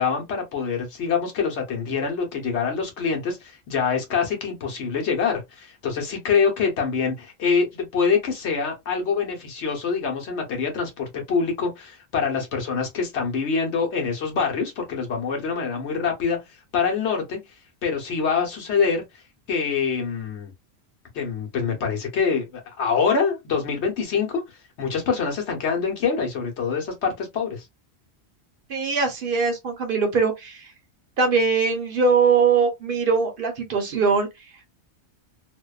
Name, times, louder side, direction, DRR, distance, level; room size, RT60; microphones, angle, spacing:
voice 1, 0.0-16.4 16.7-17.4 17.8-19.0 19.5-20.5 21.1-24.4 24.8-27.6, left 5 dB, 80° left, 1.2 m, -25 dB
voice 2, 28.7-30.6 31.2-34.3, right 5 dB, 55° right, 0.8 m, -21 dB
2.6 x 2.2 x 2.3 m
omnidirectional pair, 1.1 m